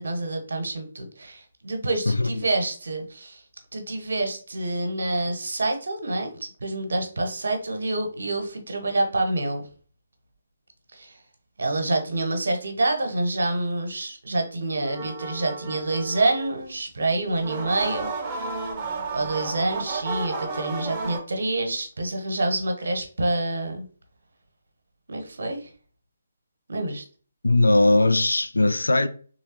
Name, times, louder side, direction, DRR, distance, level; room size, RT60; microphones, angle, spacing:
voice 1, 0.0-3.4 3.7-9.7 10.9-11.2 11.6-18.1 18.3-18.5 19.1-23.9 25.1-25.7 26.7-27.0, right 2 dB, 60° right, 0.8 m, -27 dB
voice 2, 2.1-2.5 27.4-29.1, left 2 dB, 70° left, 0.4 m, -19 dB
sound 1, 14.8-16.6 17.3-21.2, right 4 dB, 20° right, 0.6 m, -32 dB
3.5 x 3.0 x 2.8 m
figure-of-eight pair, 140°, 0 cm